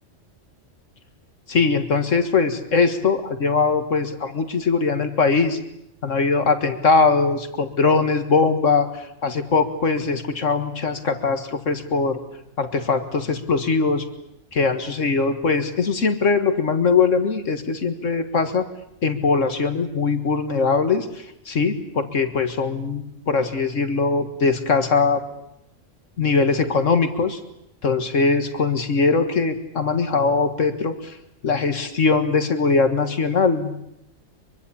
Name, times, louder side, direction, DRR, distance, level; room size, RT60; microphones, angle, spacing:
voice 1, 1.5-5.6 6.0-12.2 12.6-14.1 14.5-18.6 19.0-25.2 26.2-27.4 27.8-31.1 31.4-33.7, left 4 dB, 75° left, 8 dB, 2.0 m, -21 dB
24.0 x 23.5 x 8.6 m, 0.78 s
omnidirectional pair, 1.3 m